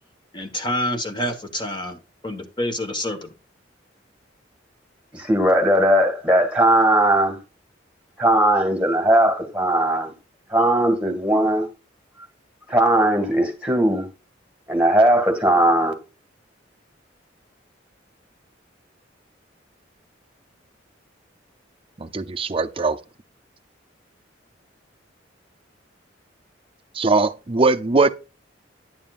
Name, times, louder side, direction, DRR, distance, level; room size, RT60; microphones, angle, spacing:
voice 1, 0.3-3.3, left 1 dB, 25° left, 1.5 m, -27 dB
voice 2, 5.1-7.4 8.2-10.1 10.5-11.7 12.7-14.1 14.7-15.9, right 1 dB, 5° right, 2.1 m, -18 dB
voice 3, 22.0-23.0 26.9-28.1, right 3 dB, 30° right, 0.6 m, -20 dB
10.5 x 7.2 x 2.5 m
head